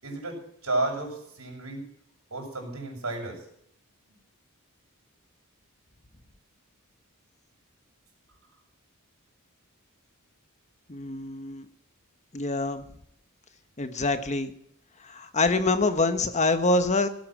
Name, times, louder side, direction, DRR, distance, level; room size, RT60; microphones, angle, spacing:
voice 1, 0.0-1.8 2.3-3.4, right 2 dB, 80° right, 0 dB, 6.4 m, -32 dB
voice 2, 10.9-11.6 12.3-12.9 13.8-14.5 15.0-17.1, left 3 dB, 35° left, 9 dB, 1.2 m, -25 dB
17.5 x 8.6 x 7.6 m, 0.71 s
head